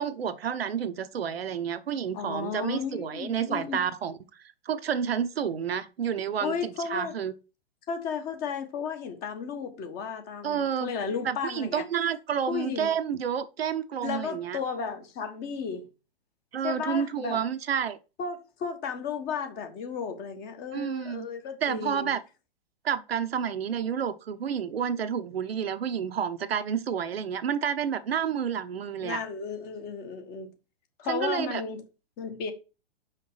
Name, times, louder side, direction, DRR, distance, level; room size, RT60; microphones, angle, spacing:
voice 1, 0.0-4.1 4.7-7.3 10.4-10.9 11.2-14.6 16.5-18.0 20.7-21.3 21.6-22.2 22.8-29.2 31.1-31.6, right 8 dB, 70° right, 0.8 m, -30 dB
voice 2, 2.1-3.8 6.4-7.1 7.9-11.8 12.5-12.9 14.0-15.9 16.6-17.4 18.2-22.1 29.0-30.5 31.0-31.8 32.2-32.5, left 6 dB, 30° left, 1.4 m, -34 dB
5.7 x 5.0 x 4.9 m
figure-of-eight pair, 115°, 31 cm